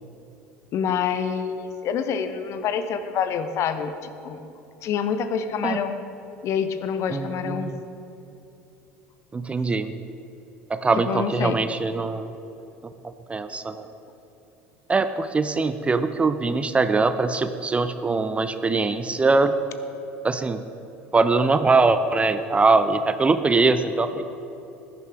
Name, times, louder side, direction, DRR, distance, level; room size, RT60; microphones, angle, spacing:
voice 1, 0.7-4.4 4.8-6.0 6.4-7.7 11.1-11.6, left 7 dB, 40° left, 10 dB, 0.9 m, -27 dB
voice 2, 7.1-7.8 9.3-9.9 10.7-12.3 13.3-13.9 14.9-19.5 20.2-20.6 21.1-24.3, right 3 dB, 15° right, 11 dB, 0.6 m, -22 dB
20.5 x 10.5 x 3.6 m, 2.9 s
figure-of-eight pair, 70°, 7 cm